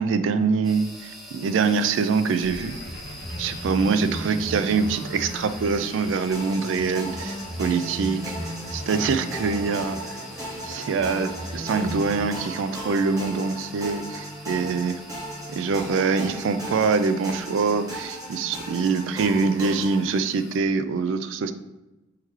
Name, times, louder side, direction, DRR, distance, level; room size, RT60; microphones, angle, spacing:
voice 1, 0.0-2.8 3.4-8.3 8.7-10.2 10.6-15.0 15.5-21.5, right 4 dB, 70° right, 10 dB, 0.3 m, -24 dB
sound 1, 0.6-20.6, equal, ahead, 0.5 m, -45 dB
sound 2, 2.4-12.2, equal, 60° left, 0.8 m, -36 dB
sound 3, 6.3-20.0, right 1 dB, 15° right, 1.0 m, -37 dB
3.5 x 3.1 x 3.1 m, 1.0 s
head